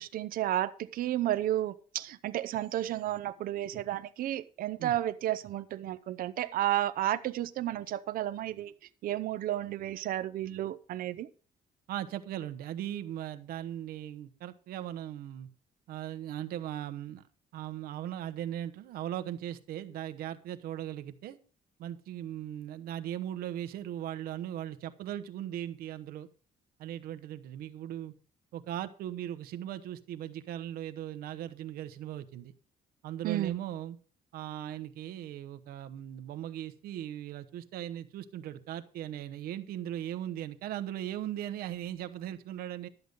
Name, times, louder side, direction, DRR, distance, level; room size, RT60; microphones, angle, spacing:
voice 1, 0.0-8.7 9.0-11.3 33.2-33.6, right 13 dB, 75° right, 12 dB, 0.7 m, -32 dB
voice 2, 11.9-15.5 15.9-17.2 17.5-21.4 21.8-26.3 26.8-28.1 28.5-32.5 33.0-34.0 34.3-42.9, right 11 dB, 90° right, 10 dB, 1.0 m, -38 dB
12.0 x 8.1 x 5.3 m, 0.38 s
cardioid pair, 130°, 15 cm